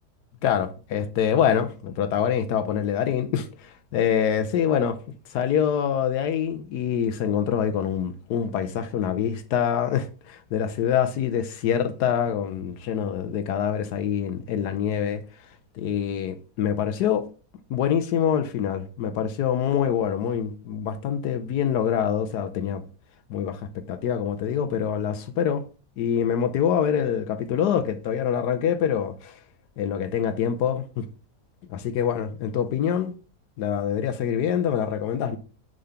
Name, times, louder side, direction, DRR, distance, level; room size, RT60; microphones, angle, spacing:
voice 1, 0.4-5.0 5.3-15.2 15.7-17.3 17.7-22.8 23.3-25.6 26.0-29.4 29.8-31.1 31.7-33.1 33.6-35.4, left 8 dB, 80° left, 1.2 m, -25 dB
6.7 x 3.9 x 5.6 m
omnidirectional pair, 1.7 m